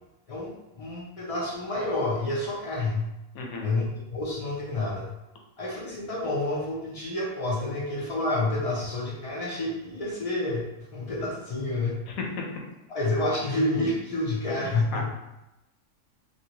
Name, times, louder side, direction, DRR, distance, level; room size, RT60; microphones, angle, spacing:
voice 1, 0.3-3.1 3.6-3.8 4.1-5.1 5.6-12.0 12.9-15.1, left 2 dB, 65° left, -5 dB, 0.3 m, -29 dB
voice 2, 3.3-3.7 12.1-12.4 14.9-15.1, left 3 dB, 80° left, 0 dB, 1.0 m, -33 dB
2.7 x 2.3 x 2.9 m, 0.94 s
omnidirectional pair, 1.5 m